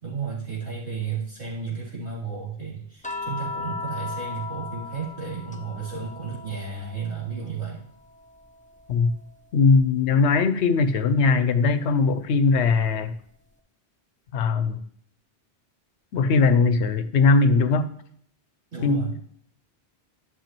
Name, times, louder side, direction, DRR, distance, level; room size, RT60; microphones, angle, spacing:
voice 1, 0.0-7.9 18.7-19.1, right 6 dB, 90° right, -7 dB, 3.4 m, -33 dB
sound 1, 3.0-7.5 7.9-9.5 11.0-11.2, left 4 dB, 10° left, 0.3 m, -37 dB
voice 2, 9.5-13.1 14.3-14.8 16.1-17.9 18.8-19.1, left 4 dB, 85° left, 12 dB, 0.9 m, -20 dB
12.0 x 6.2 x 3.0 m, 0.63 s
omnidirectional pair, 1.1 m